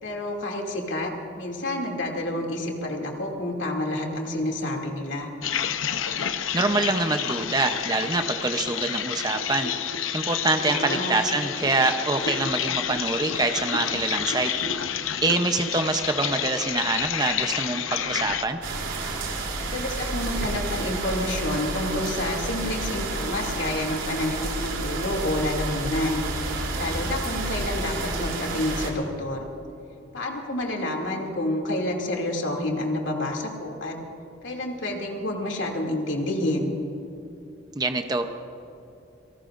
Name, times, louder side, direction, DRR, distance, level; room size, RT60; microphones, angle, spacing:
voice 1, 0.0-5.3 10.7-11.1 19.6-26.2 26.8-29.5 30.1-34.0 34.4-36.7, left 1 dB, 70° left, 0 dB, 2.6 m, -29 dB
sound 1, 5.4-18.5, left 8 dB, 90° left, 0.8 m, -29 dB
voice 2, 6.5-9.7 10.1-14.5 15.2-18.6 37.7-38.3, right 3 dB, 20° right, 6 dB, 0.7 m, -25 dB
sound 2, 18.6-28.9, right 2 dB, 85° right, 3.2 m, -30 dB
30.0 x 18.5 x 2.6 m, 2.9 s
head